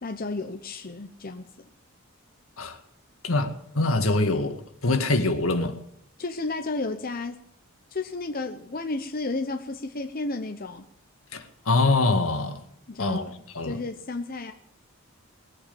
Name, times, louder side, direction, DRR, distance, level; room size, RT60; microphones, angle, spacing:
voice 1, 0.0-1.7 6.2-7.4 7.9-10.9 12.9-13.3 13.6-14.5, left 3 dB, 45° left, 0.8 m, -32 dB
voice 2, 3.2-5.7 11.3-12.6 13.0-13.2 13.5-13.8, left 2 dB, 80° left, 1.9 m, -24 dB
19.5 x 8.7 x 7.0 m
head